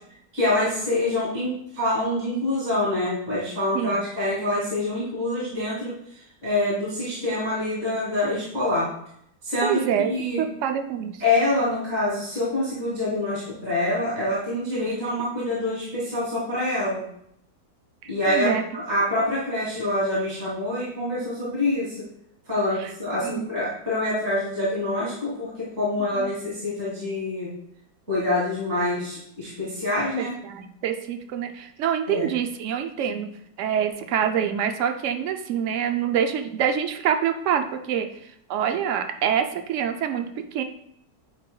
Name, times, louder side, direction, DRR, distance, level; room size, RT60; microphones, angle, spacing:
voice 1, 0.3-8.9 9.4-10.4 11.2-17.0 18.1-22.0 22.5-27.5 28.1-30.3 32.1-32.3, left 1 dB, 40° right, -8 dB, 2.6 m, -26 dB
voice 2, 9.6-10.1 10.4-11.2 14.7-14.9 18.0-18.6 22.8-22.9 23.2-23.5 26.2-26.3 30.2-33.3 33.6-38.1 38.5-40.6, right 8 dB, 80° right, 6 dB, 0.6 m, -26 dB
9.4 x 4.9 x 2.3 m, 0.73 s
omnidirectional pair, 1.9 m